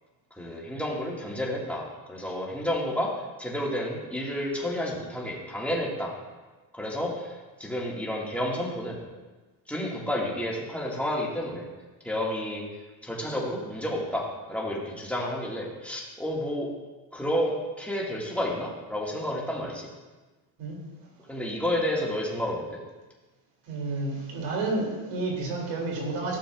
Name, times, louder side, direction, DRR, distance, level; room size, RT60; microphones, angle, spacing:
voice 1, 0.4-3.1 3.4-6.1 6.8-9.0 9.7-11.6 12.0-12.6 13.0-16.7 17.1-19.9 21.3-22.8, left 1 dB, 5° left, -4 dB, 2.0 m, -30 dB
voice 2, 23.7-26.4, right 2 dB, 90° right, -2 dB, 3.0 m, -30 dB
15.5 x 6.9 x 2.5 m, 1.2 s
cardioid pair, 130°, 49 cm